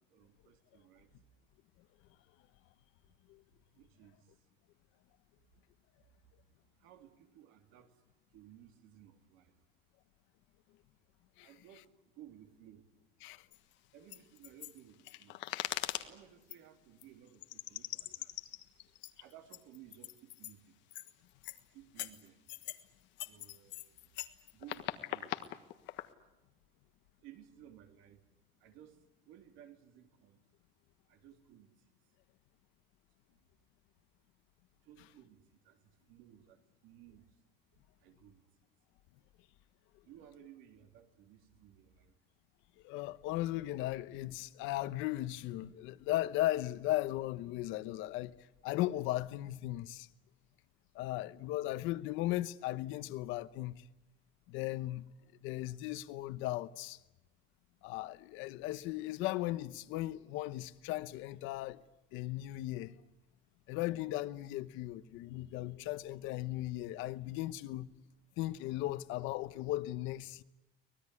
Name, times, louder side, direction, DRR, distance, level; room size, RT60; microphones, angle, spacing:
voice 1, 0.1-1.1 3.7-4.3 6.8-7.9 8.3-9.5 11.4-11.9 12.2-12.9 13.9-15.4 16.0-18.3 19.2-20.7 21.7-22.4 23.2-23.9 24.5-25.3 27.2-28.2 28.6-29.0 29.3-30.4 31.1-31.7 34.8-35.8 36.1-37.3 38.0-38.4 40.0-42.1, right 11 dB, 90° right, 3.2 m, -58 dB
sound 1, 13.5-13.6 14.1-16.1 16.5-16.6 17.0-17.1 17.4-20.5 20.9-21.1 21.4-21.6 22.0-22.8 23.2-26.1, left 15 dB, 65° left, 1.5 m, -41 dB
voice 2, 42.8-48.4 48.6-50.1 50.9-53.8 54.5-55.1 55.4-57.0 57.8-61.8 62.1-63.0 63.7-67.9 68.4-70.4, left 16 dB, 90° left, 1.0 m, -37 dB
24.5 x 19.5 x 9.8 m
cardioid pair, 175°, 20 cm